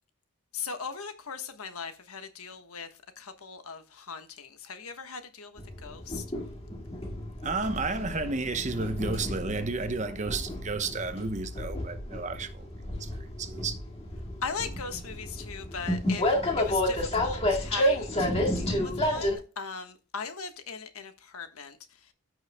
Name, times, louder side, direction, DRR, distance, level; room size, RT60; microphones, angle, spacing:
voice 1, 0.5-2.9 3.2-6.2 14.4-16.2 16.6-21.8, left 5 dB, 80° left, 1.3 m, -39 dB
Train, 5.6-19.4, left 1 dB, 25° left, 2.0 m, -31 dB
voice 2, 7.4-12.7 13.0-13.7, right 3 dB, 30° right, 0.9 m, -32 dB
14.5 x 6.3 x 2.2 m
head